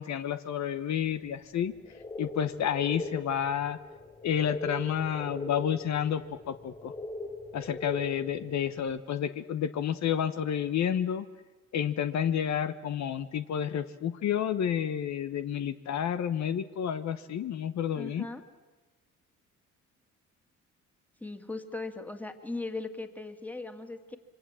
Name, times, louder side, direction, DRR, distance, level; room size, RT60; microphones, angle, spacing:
voice 1, 0.0-1.7 2.2-3.8 4.2-6.2 6.5-6.9 7.5-11.2 11.7-18.3, left 9 dB, 65° left, 11 dB, 1.0 m, -30 dB
sound 1, 1.6-9.0, left 2 dB, 25° left, 3.5 m, -40 dB
voice 2, 18.0-18.4 21.2-24.2, left 3 dB, 5° left, 7 dB, 2.2 m, -38 dB
26.5 x 23.0 x 7.6 m, 1.2 s
cardioid pair, 90°, 30 cm